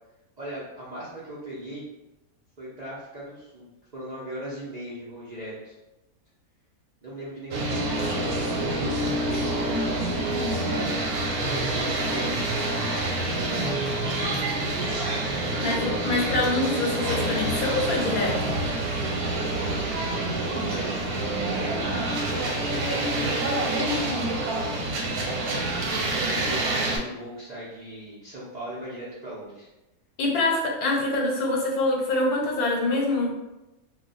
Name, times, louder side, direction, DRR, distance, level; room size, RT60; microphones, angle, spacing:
voice 1, 0.4-1.8 2.6-5.8 7.0-9.0 9.3-12.6 13.2-14.5 20.3-29.7, right 1 dB, 50° right, -9 dB, 0.5 m, -39 dB
sound 1, 7.5-27.0, right 2 dB, 90° right, 1.1 m, -27 dB
voice 2, 15.6-18.5 30.2-33.3, left 2 dB, 80° left, -1 dB, 1.2 m, -25 dB
2.4 x 2.2 x 3.8 m, 0.97 s
omnidirectional pair, 1.5 m